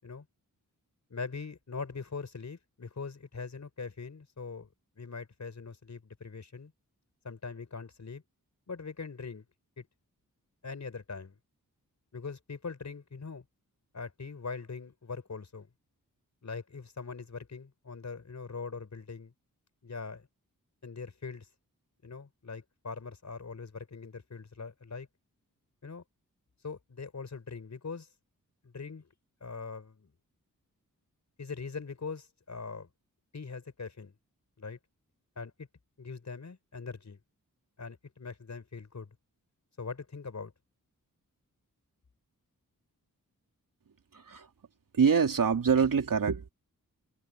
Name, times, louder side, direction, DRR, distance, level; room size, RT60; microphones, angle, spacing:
voice 1, 1.1-4.7 5.0-6.7 7.2-8.2 8.7-9.4 9.8-9.9 10.6-11.4 12.1-13.4 13.9-15.7 16.4-19.3 19.8-20.3 20.8-21.5 22.0-25.1 25.8-26.0 26.6-28.1 28.6-29.1 29.4-30.1 31.4-32.9 33.3-34.1 34.6-34.8 35.4-35.7 36.0-37.2 37.8-39.1 39.8-40.5, left 4 dB, 55° left, 4.9 m, -42 dB
voice 2, 44.1-44.5 44.9-46.5, right 6 dB, 70° right, 3.2 m, -25 dB
wide cardioid pair, 90°, 34 cm